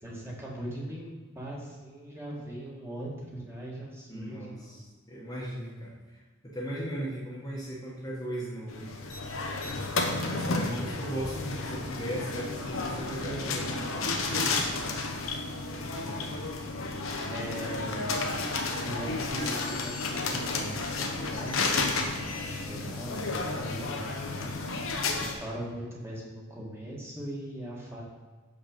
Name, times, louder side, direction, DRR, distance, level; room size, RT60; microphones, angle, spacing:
voice 1, 0.0-4.8 9.7-9.8 15.9-16.5 17.3-18.2 18.6-24.5 25.2-28.0, right 1 dB, 10° right, -4 dB, 1.6 m, -40 dB
voice 2, 4.1-5.9 6.4-9.0 10.2-15.2, equal, 20° left, -5 dB, 1.2 m, -37 dB
sound 1, 8.7-25.3, left 3 dB, 90° left, 1.0 m, -32 dB
6.7 x 5.5 x 5.1 m, 1.3 s
head